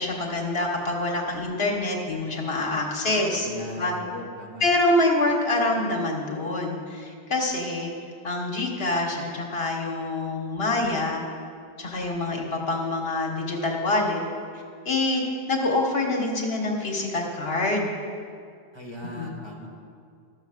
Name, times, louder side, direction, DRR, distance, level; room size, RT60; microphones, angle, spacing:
voice 1, 0.0-3.5 3.8-3.9 4.6-7.9 8.2-11.2 11.8-14.2 14.9-15.2 15.5-17.9 19.2-19.3, left 2 dB, 75° left, 0 dB, 1.7 m, -26 dB
voice 2, 3.4-4.7 18.7-19.7, equal, 25° right, -3 dB, 1.7 m, -38 dB
13.5 x 6.7 x 6.5 m, 2.2 s
omnidirectional pair, 1.0 m